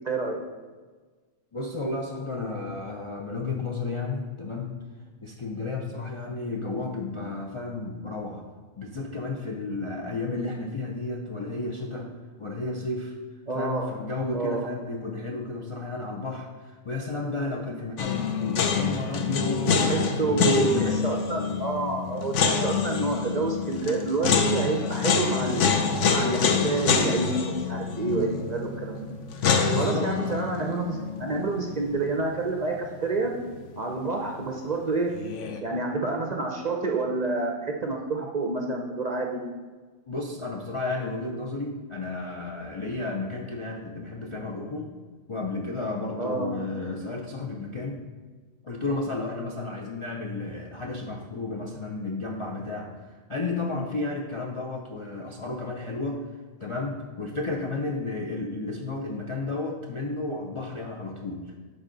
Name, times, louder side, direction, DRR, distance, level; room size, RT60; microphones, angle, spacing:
voice 1, 0.0-0.4 13.5-13.9 14.3-14.7 19.7-20.7 21.0-25.8 26.1-29.1 29.4-29.5 29.8-33.3 33.8-35.1 35.6-39.4 46.2-46.5, right 3 dB, 45° right, 1 dB, 0.6 m, -28 dB
voice 2, 1.5-4.7 5.2-8.4 8.8-12.1 12.4-13.2 13.5-21.0 29.6-30.1 40.1-44.9 45.3-48.0 48.6-56.2 56.6-61.6, left 3 dB, 40° left, 0 dB, 0.4 m, -32 dB
sound 1, 18.0-33.0 33.2-33.3 35.1-35.6, left 5 dB, 70° left, 1.0 m, -26 dB
11.0 x 4.1 x 3.9 m, 1.4 s
omnidirectional pair, 1.3 m